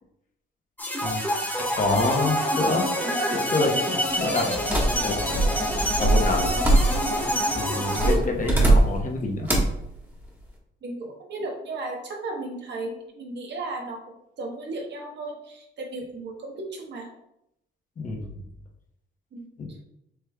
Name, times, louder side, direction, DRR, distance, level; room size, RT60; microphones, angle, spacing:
sound 1, 0.8-8.1, equal, 10° left, 1.4 m, -26 dB
voice 1, 1.7-2.9 3.3-3.8 4.2-4.5 4.9-5.2 6.0-6.5 7.5-9.5 18.0-18.3 19.6-19.7, left 2 dB, 40° left, 1 dB, 1.0 m, -27 dB
sound 2, 4.7-7.3 8.0-9.1 9.5-9.8, right 2 dB, 10° right, 1.4 m, -22 dB
voice 2, 8.0-8.6 10.8-14.0 14.4-17.1 19.3-19.8, right 2 dB, 60° right, 0 dB, 1.2 m, -34 dB
6.6 x 3.3 x 2.3 m, 0.80 s
cardioid pair, 90°, 20 cm